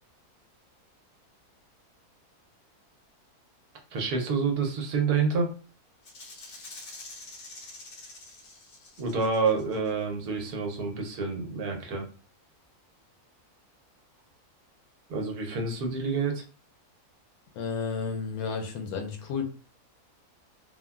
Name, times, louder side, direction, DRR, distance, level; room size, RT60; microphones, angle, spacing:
voice 1, 3.9-5.5 9.0-12.1 15.1-16.4, right 4 dB, 80° right, 2 dB, 1.2 m, -28 dB
Rattle (instrument), 6.0-9.9, left 2 dB, 60° left, 0.5 m, -46 dB
voice 2, 17.6-19.4, left 5 dB, 75° left, 4 dB, 1.1 m, -32 dB
3.4 x 2.1 x 2.3 m, 0.37 s
omnidirectional pair, 1.6 m